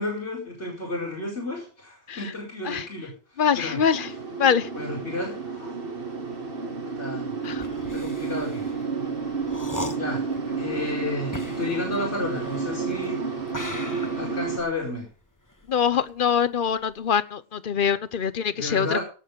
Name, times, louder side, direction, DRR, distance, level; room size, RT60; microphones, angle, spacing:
voice 1, 0.0-4.2 4.7-5.8 7.0-7.4 7.8-8.7 10.0-13.2 14.2-15.1 18.5-19.0, left 2 dB, 80° left, -3 dB, 5.1 m, -32 dB
voice 2, 3.4-4.1 4.4-4.7 7.4-7.6 15.7-18.9, left 7 dB, 50° left, 16 dB, 0.9 m, -23 dB
sound 1, 3.9-14.6, right 5 dB, 55° right, 2.1 m, -31 dB
sound 2, 7.5-13.0 13.5-16.4 16.7-17.1, left 2 dB, 15° left, 1.3 m, -39 dB
17.5 x 7.8 x 5.2 m, 0.38 s
omnidirectional pair, 1.2 m